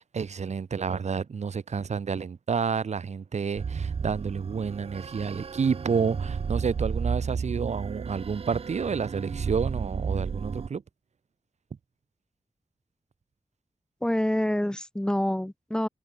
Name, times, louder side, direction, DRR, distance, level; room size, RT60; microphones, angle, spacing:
voice 1, 0.0-10.8, right 6 dB, 80° right, 0.8 m, -30 dB
sound 1, 3.6-10.7, right 6 dB, 55° right, 0.4 m, -32 dB
voice 2, 14.0-15.9, left 1 dB, 5° left, 0.4 m, -27 dB
wide cardioid pair, 95°, 12 cm